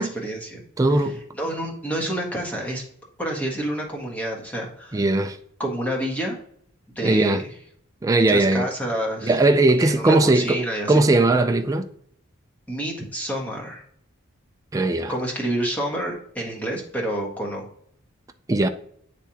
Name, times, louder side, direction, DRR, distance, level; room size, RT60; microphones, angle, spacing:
voice 1, 0.0-0.6 1.4-2.8 3.2-5.0 5.6-6.4 6.9-7.5 8.1-9.4 9.8-11.0 12.7-13.8 15.1-17.6, right 1 dB, 5° left, 1.4 m, -28 dB
voice 2, 0.8-1.2 4.9-5.4 7.0-7.4 8.0-8.7 9.2-10.6 10.9-11.9 14.7-15.1 18.5-18.7, right 2 dB, 15° right, 0.4 m, -19 dB
9.9 x 3.4 x 2.9 m
head